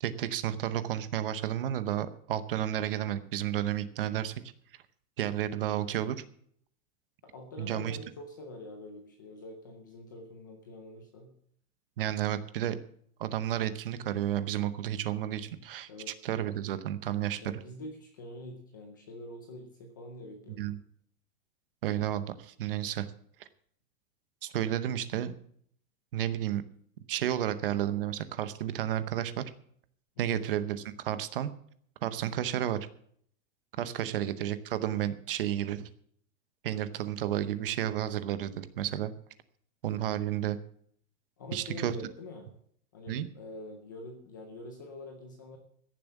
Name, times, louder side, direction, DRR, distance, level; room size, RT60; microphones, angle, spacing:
voice 1, 0.0-4.3 5.2-6.2 7.6-8.0 12.0-12.8 13.2-15.9 16.2-17.5 20.6-20.8 21.8-23.1 24.4-25.3 26.1-26.6 27.1-29.4 30.2-31.5 32.0-32.9 33.8-35.9 36.6-39.1 39.8-40.6 41.5-42.0 43.1-43.3, right 11 dB, 40° right, 13 dB, 0.8 m, -32 dB
voice 2, 7.2-11.3 15.9-16.1 17.4-20.6 30.2-30.5 34.0-34.3 41.4-42.5 42.9-45.6, left 1 dB, 15° left, 4 dB, 0.5 m, -45 dB
15.0 x 7.3 x 7.1 m, 0.65 s
supercardioid pair, 180°, 44 cm